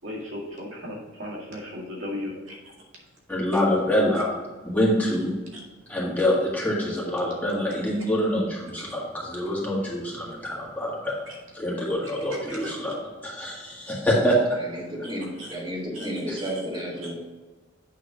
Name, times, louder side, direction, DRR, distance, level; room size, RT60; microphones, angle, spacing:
voice 1, 0.0-2.5 11.3-11.4 12.3-12.8 15.4-15.5 15.9-16.1 16.4-16.5 17.0-17.1, left 1 dB, 85° right, -3 dB, 2.1 m, -36 dB
voice 2, 3.3-4.3 4.6-5.3 5.9-11.1 11.5-13.0 13.2-14.4, equal, 10° left, -5 dB, 1.7 m, -25 dB
voice 3, 14.6-17.1, equal, 25° right, -4 dB, 1.9 m, -32 dB
8.4 x 3.7 x 5.0 m, 1.3 s
head